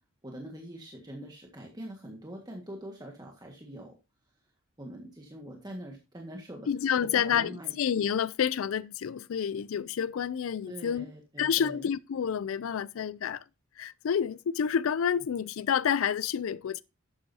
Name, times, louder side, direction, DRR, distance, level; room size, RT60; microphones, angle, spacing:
voice 1, 0.2-4.0 4.8-6.7 7.0-7.7 10.7-11.9, right 1 dB, 20° right, 1.6 m, -43 dB
voice 2, 6.7-11.1 11.4-13.4 13.8-16.8, left 8 dB, 80° left, 0.4 m, -29 dB
11.5 x 8.8 x 2.7 m
head